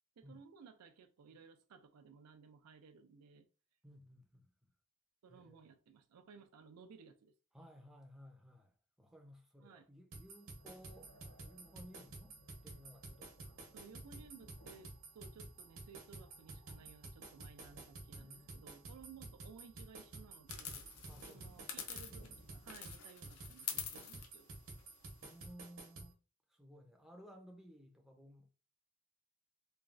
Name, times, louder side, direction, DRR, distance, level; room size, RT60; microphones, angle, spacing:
voice 1, 0.2-3.5 5.2-7.3 9.6-9.9 13.7-20.9 21.3-24.5, right 5 dB, 90° right, 0.4 m, -58 dB
voice 2, 3.8-4.5 5.3-5.6 7.5-8.7 9.0-11.1 11.4-12.4 12.6-13.9 17.7-17.8 18.1-18.5 21.1-21.5 25.2-26.1 26.5-28.5, equal, ahead, 0.5 m, -58 dB
sound 1, 10.1-26.1, right 2 dB, 60° right, 0.9 m, -51 dB
sound 2, 10.5-22.8, equal, 50° left, 0.9 m, -64 dB
sound 3, 20.5-22.4 22.7-25.5, left 8 dB, 80° left, 0.6 m, -46 dB
3.1 x 2.4 x 2.4 m
head